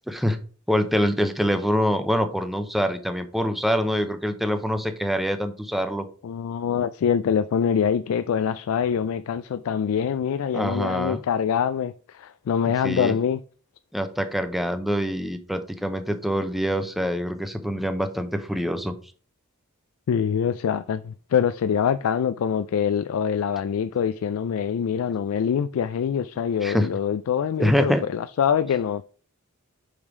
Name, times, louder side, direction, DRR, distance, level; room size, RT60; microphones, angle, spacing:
voice 1, 0.1-0.4 0.7-6.1 10.5-11.2 12.8-13.2 13.9-18.9 26.6-26.9 27.6-28.0, equal, ahead, 0.6 m, -25 dB
voice 2, 6.2-13.4 20.1-29.0, left 7 dB, 75° left, 0.3 m, -24 dB
5.4 x 5.0 x 4.8 m
head